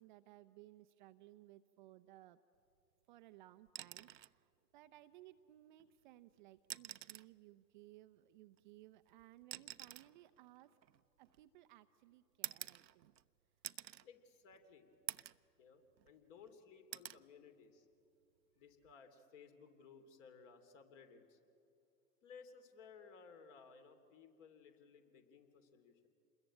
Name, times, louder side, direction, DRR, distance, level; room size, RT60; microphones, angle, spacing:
voice 1, 0.0-2.4 3.1-10.8 11.2-13.1, right 15 dB, 30° right, 9 dB, 0.5 m, -61 dB
sound 1, 3.7-4.4 5.8-5.9 6.6-7.4 8.5-11.6 12.4-13.3 13.6-14.1 14.5-14.6 15.1-15.5 15.9-16.5 16.9-17.2 18.7-18.9, right 11 dB, 85° right, 0.7 m, -49 dB
voice 2, 14.0-14.9 15.6-17.9 18.5-21.4 22.2-26.1, left 5 dB, 45° left, 7 dB, 3.1 m, -60 dB
28.0 x 21.5 x 8.9 m, 2.7 s
hypercardioid pair, 115°, 49 cm